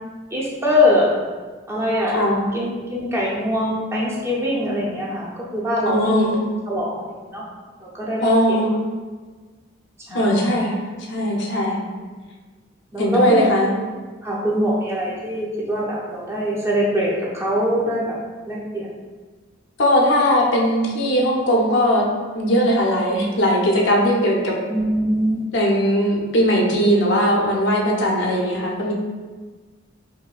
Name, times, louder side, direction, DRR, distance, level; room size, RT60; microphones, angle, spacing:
voice 1, 0.3-1.1 1.7-2.2 2.5-5.3 5.5-6.4 6.7-7.4 7.8-8.6 10.1-10.4 12.9-13.5 14.2-18.1 18.5-18.9 24.7-25.4, left 1 dB, 15° right, -5 dB, 0.5 m, -23 dB
voice 2, 5.9-6.4 8.2-8.7 10.1-10.8 11.1-11.8 13.0-13.7 19.8-22.1 22.3-24.6 25.5-28.9, equal, 70° left, -1 dB, 0.6 m, -19 dB
4.1 x 2.6 x 2.4 m, 1.4 s
head